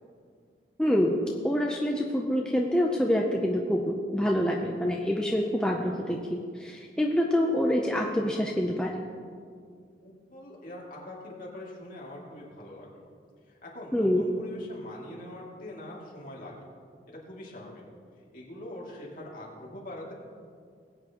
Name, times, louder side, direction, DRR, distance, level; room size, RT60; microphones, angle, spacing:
voice 1, 0.8-1.2 1.4-9.0 13.9-14.2, equal, 5° left, -1 dB, 0.6 m, -26 dB
voice 2, 10.0-13.1 13.5-16.7 17.3-17.8 18.3-20.1, left 1 dB, 45° left, -4 dB, 2.5 m, -43 dB
20.5 x 8.5 x 3.0 m, 2.2 s
head